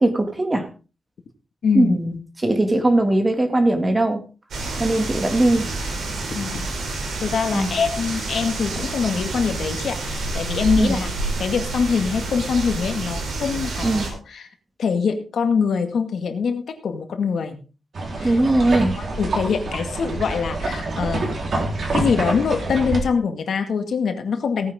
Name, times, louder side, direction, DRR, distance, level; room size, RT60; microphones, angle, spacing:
voice 1, 0.0-0.7 1.7-4.2 4.8-5.7 7.5-7.8 10.8-11.0 13.8-14.1 18.2-18.9, right 1 dB, 20° right, 6 dB, 2.2 m, -20 dB
voice 2, 1.6-2.0 6.3-6.7 7.2-11.1 11.4-14.5 14.8-17.6 18.2-18.4 19.0-21.4 21.9-24.7, left 6 dB, 70° left, 7 dB, 2.0 m, -24 dB
sound 1, 4.5-14.1, right 3 dB, 90° right, 4.7 m, -28 dB
sound 2, 17.9-23.0, right 2 dB, 55° right, 3.9 m, -26 dB
17.5 x 9.5 x 3.7 m, 0.34 s
wide cardioid pair, 135°, 0 cm